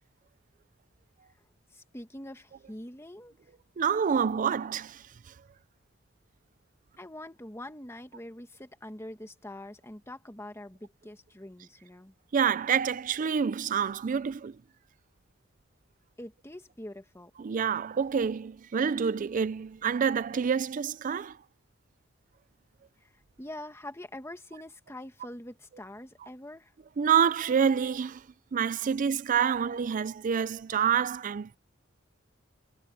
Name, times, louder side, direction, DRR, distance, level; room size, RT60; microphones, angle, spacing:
voice 1, 1.7-3.3 7.0-12.1 16.2-17.3 23.0-26.7, left 1 dB, 15° left, 1.6 m, -44 dB
voice 2, 3.8-5.3 12.3-14.6 17.4-21.4 27.0-28.3 28.5-31.6, right 7 dB, 40° right, 0.4 m, -27 dB
head